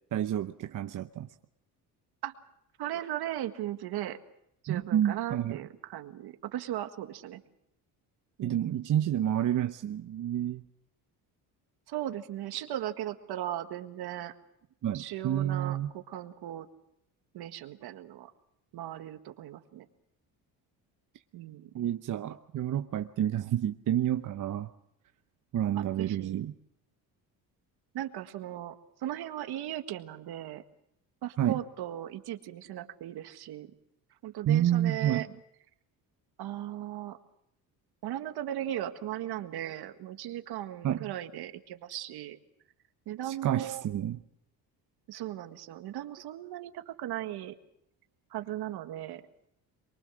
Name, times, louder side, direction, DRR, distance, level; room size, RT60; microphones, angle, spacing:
voice 1, 0.1-1.3 4.7-5.6 8.4-10.6 14.8-15.9 21.7-24.7 25.5-26.5 31.4-31.6 34.5-35.2 40.8-41.0 43.3-44.2, right 11 dB, 50° right, 7 dB, 0.9 m, -29 dB
voice 2, 2.8-4.2 4.6-7.4 8.4-8.8 11.9-14.3 14.9-16.7 17.3-18.3 18.7-19.8 21.3-21.7 25.7-26.4 27.9-30.6 31.2-33.7 34.2-35.3 36.4-37.2 38.0-42.4 43.0-43.8 45.1-47.5 48.3-49.2, right 12 dB, 70° right, 8 dB, 1.8 m, -37 dB
23.5 x 22.5 x 6.3 m, 0.76 s
cardioid pair, 95°, 40 cm